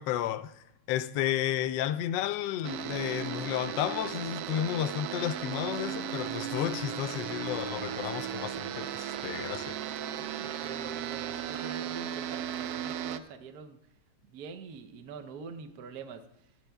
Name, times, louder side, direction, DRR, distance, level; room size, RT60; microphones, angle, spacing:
voice 1, 0.0-9.8, left 11 dB, 75° left, 1.1 m, -32 dB
sound 1, 2.6-13.2, right 9 dB, 75° right, 0.8 m, -36 dB
voice 2, 10.2-13.8 14.3-16.2, right 5 dB, 60° right, 1.2 m, -45 dB
26.5 x 9.1 x 2.3 m
omnidirectional pair, 2.2 m